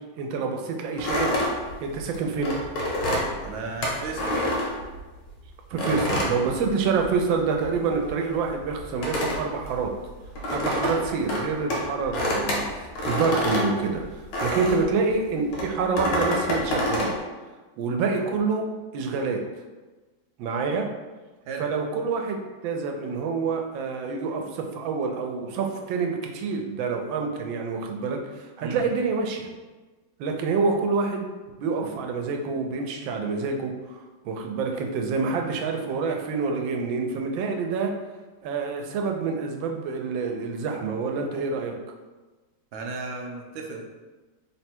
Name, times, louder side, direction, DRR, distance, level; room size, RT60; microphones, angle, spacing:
voice 1, 0.2-1.3 1.8-2.6 5.7-9.9 10.5-17.2 17.8-18.7 18.9-19.4 20.4-20.9 21.6-29.5 30.2-31.3 31.6-34.0 34.2-37.9 38.4-41.7, right 4 dB, 90° right, 2 dB, 1.3 m, -27 dB
sound 1, 1.0-5.3 5.8-7.3 7.5-14.9 15.5-17.2, left 1 dB, 75° left, 1.5 m, -27 dB
voice 2, 3.4-4.3 14.5-14.7 21.5-21.6 28.6-28.9 42.7-43.8, right 4 dB, 70° right, 1 dB, 1.0 m, -34 dB
3.6 x 2.1 x 4.3 m, 1.2 s
omnidirectional pair, 2.1 m